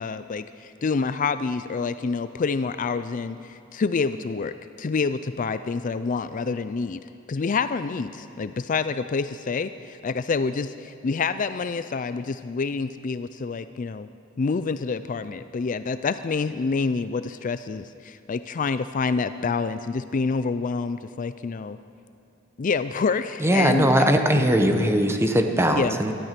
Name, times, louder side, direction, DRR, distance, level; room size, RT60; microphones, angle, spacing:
voice 1, 0.0-7.0 7.3-14.1 14.4-21.8 22.6-23.9 24.7-25.0 25.7-26.0, left 4 dB, 40° left, 12 dB, 0.4 m, -27 dB
voice 2, 23.4-26.1, right 1 dB, 15° right, 5 dB, 1.0 m, -20 dB
18.5 x 13.0 x 5.9 m, 2.5 s
head